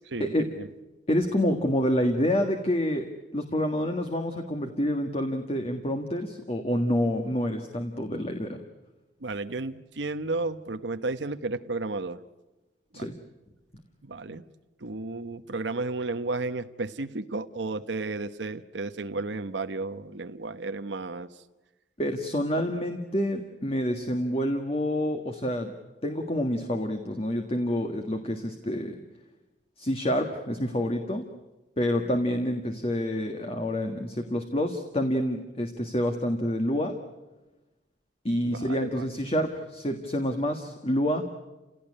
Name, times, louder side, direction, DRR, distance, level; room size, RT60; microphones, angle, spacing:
voice 1, 0.1-0.7 9.2-12.2 12.9-13.1 14.0-14.4 14.8-21.3 38.4-39.0, right 3 dB, 85° right, 9 dB, 1.0 m, -33 dB
voice 2, 1.1-3.1 3.3-8.6 12.9-13.1 22.0-25.7 26.0-29.0 29.8-31.2 31.8-36.9 38.3-41.2, equal, 35° left, 5 dB, 1.7 m, -28 dB
29.0 x 17.5 x 9.9 m, 1.1 s
head